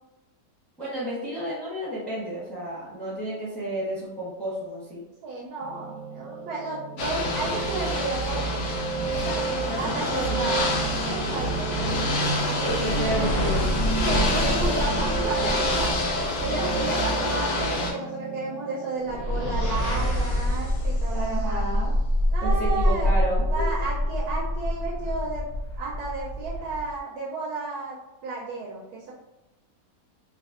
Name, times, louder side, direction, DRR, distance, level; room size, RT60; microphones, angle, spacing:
voice 1, 0.8-5.0 9.1-10.6 12.6-13.7 16.5-16.7 21.1-21.9 22.4-23.7, right 1 dB, ahead, -8 dB, 0.8 m, -32 dB
voice 2, 5.2-8.6 9.8-10.6 11.0-11.7 12.4-13.3 14.0-15.9 16.4-21.7 22.3-23.1 23.5-25.4 25.8-29.1, right 3 dB, 85° right, -4 dB, 1.1 m, -32 dB
Piano, 5.6-20.0, right 4 dB, 65° right, 0.8 m, -33 dB
Ocean / Boat Water vehicle, 7.0-17.9, left 1 dB, 80° left, 1.1 m, -28 dB
sound 1, 12.5-16.9 19.0-27.0, equal, 65° left, 0.8 m, -27 dB
3.3 x 2.2 x 2.4 m, 0.98 s
omnidirectional pair, 1.6 m